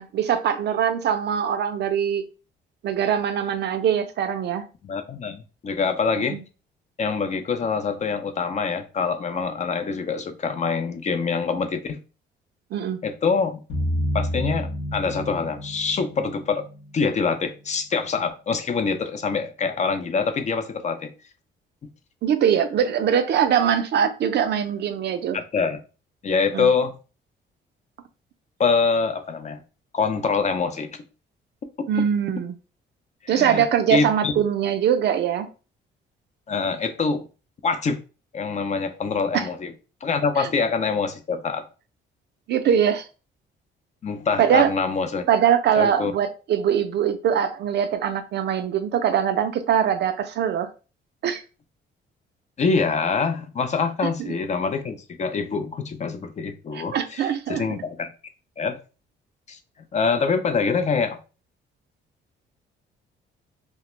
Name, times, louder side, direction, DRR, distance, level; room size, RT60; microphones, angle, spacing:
voice 1, 0.0-2.2 2.8-4.6 6.3-6.4 12.7-13.0 22.2-25.4 26.5-26.7 31.9-32.5 33.3-35.5 39.3-39.5 40.4-40.5 42.5-43.1 44.4-44.7 45.3-50.7 51.2-51.4 54.2-54.3 56.7-57.6, right 8 dB, 60° right, 0.4 m, -22 dB
voice 2, 4.8-6.4 7.0-12.0 13.0-13.6 14.1-16.7 16.9-21.1 21.8-21.9 25.3-25.8 26.2-26.9 28.6-29.6 29.9-30.9 33.2-34.3 36.5-37.3 37.6-38.0 38.3-39.7 40.0-41.6 44.0-45.3 45.8-46.1 52.6-58.1 58.6-58.8 59.5-59.6 59.9-61.2, left 5 dB, 35° left, 0.4 m, -25 dB
sound 1, 13.7-17.4, equal, 70° left, 0.7 m, -29 dB
2.4 x 2.1 x 3.0 m
cardioid pair, 90°, 20 cm